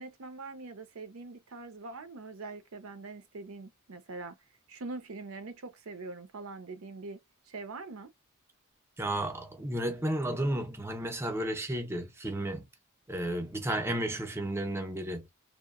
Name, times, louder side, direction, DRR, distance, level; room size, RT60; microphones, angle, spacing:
voice 1, 0.0-4.3 4.7-7.2 7.5-8.1, right 3 dB, 75° right, 0.6 m, -43 dB
voice 2, 9.0-12.7 13.1-15.3, right 1 dB, 10° right, 0.5 m, -33 dB
2.9 x 2.1 x 2.3 m
head